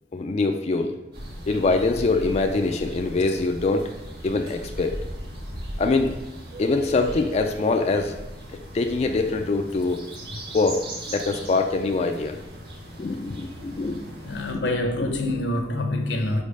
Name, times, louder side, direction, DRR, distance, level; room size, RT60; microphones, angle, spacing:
voice 1, 0.1-1.0 1.5-3.9 4.2-4.9 5.8-6.1 6.6-8.2 8.7-10.1 10.5-10.8 11.1-12.3 13.0-14.0 15.0-15.2, left 3 dB, 35° left, 0.4 m, -23 dB
sound 1, 1.1-14.5, right 1 dB, 60° right, 1.5 m, -38 dB
voice 2, 14.2-16.4, left 1 dB, 75° left, 0.9 m, -26 dB
5.2 x 4.5 x 5.2 m
head